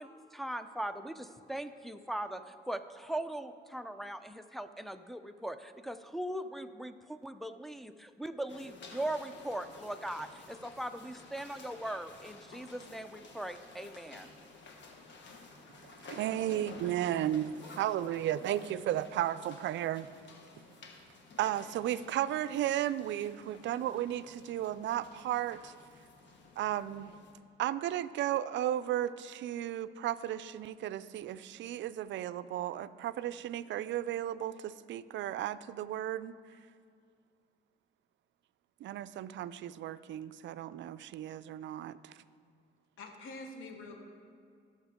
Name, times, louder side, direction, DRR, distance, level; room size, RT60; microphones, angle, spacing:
voice 1, 0.0-14.3, right 1 dB, ahead, 8 dB, 0.5 m, -40 dB
sound 1, 8.5-27.3, left 3 dB, 65° left, 1.4 m, -53 dB
voice 2, 16.1-20.1 21.4-25.7 26.6-27.1 27.6-36.4 38.8-42.2, right 12 dB, 70° right, 15 dB, 0.4 m, -34 dB
voice 3, 43.0-44.0, left 2 dB, 90° left, 3 dB, 1.2 m, -45 dB
17.0 x 6.5 x 3.7 m, 2.3 s
cardioid pair, 90°, 20 cm